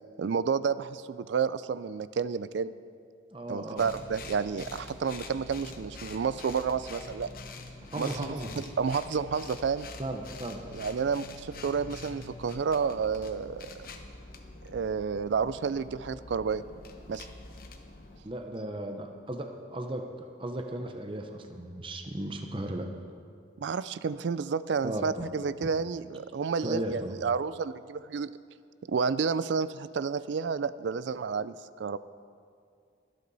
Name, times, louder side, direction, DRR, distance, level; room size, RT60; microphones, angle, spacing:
voice 1, 0.2-2.7 3.5-7.3 7.9-9.9 10.7-13.7 14.7-16.6 17.1-17.3 23.6-28.3 28.9-32.0, right 5 dB, 70° right, 16 dB, 0.4 m, -30 dB
voice 2, 3.3-3.9 7.9-8.5 10.0-10.6 18.2-22.9 24.8-25.3 26.6-27.1, right 1 dB, 25° right, 4 dB, 0.7 m, -36 dB
sound 1, 3.8-18.2, left 3 dB, 50° left, 0.9 m, -45 dB
23.5 x 8.4 x 4.1 m, 2.3 s
head